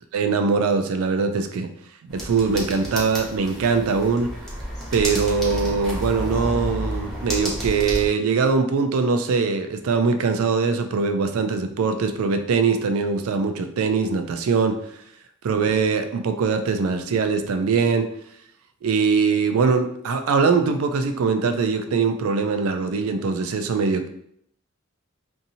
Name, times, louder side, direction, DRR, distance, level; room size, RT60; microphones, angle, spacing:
voice 1, 0.1-1.7 2.1-4.3 4.9-14.8 15.4-18.1 18.8-24.1, right 5 dB, 90° right, 7 dB, 0.4 m, -22 dB
sound 1, 2.1-8.1, equal, ahead, 0.7 m, -30 dB
2.7 x 2.6 x 2.7 m, 0.70 s
head